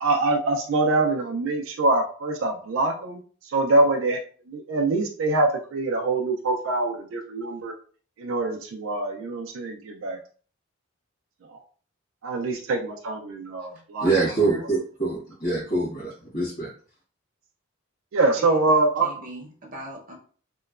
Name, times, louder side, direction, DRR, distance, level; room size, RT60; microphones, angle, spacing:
voice 1, 0.0-4.2 4.5-7.7 8.2-10.2 11.5-11.6 12.2-14.1 18.1-19.1, right 2 dB, 75° right, 2 dB, 0.4 m, -24 dB
voice 2, 14.0-16.7, right 3 dB, 40° left, -8 dB, 1.1 m, -25 dB
voice 3, 18.4-20.1, right 1 dB, 40° right, 1 dB, 0.7 m, -40 dB
2.9 x 2.1 x 2.3 m, 0.42 s
head